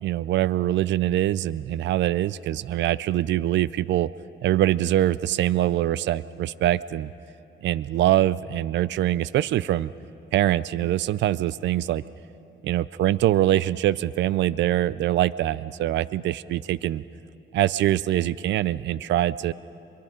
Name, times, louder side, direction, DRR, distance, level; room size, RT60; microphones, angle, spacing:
voice 1, 0.0-4.1 4.4-7.1 7.6-9.9 10.3-12.0 12.6-17.0 17.5-19.5, right 13 dB, 65° right, 19 dB, 0.4 m, -23 dB
25.5 x 22.5 x 5.1 m, 2.9 s
cardioid pair, 90°, 20 cm